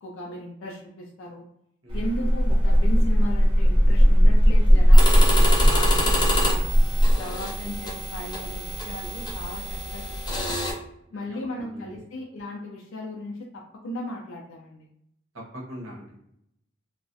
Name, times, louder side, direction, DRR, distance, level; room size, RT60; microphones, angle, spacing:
voice 1, 0.0-1.5 1.9-6.6 7.2-10.6 11.1-14.9, left 1 dB, 80° left, -1 dB, 0.4 m, -36 dB
sound 1, 1.9-7.1, equal, 25° right, 0.7 m, -17 dB
sound 2, 4.9-10.7, left 1 dB, 20° left, 0.4 m, -28 dB
voice 2, 11.3-12.0 15.5-16.2, equal, 80° right, -3 dB, 0.8 m, -42 dB
2.4 x 2.0 x 2.5 m, 0.76 s
head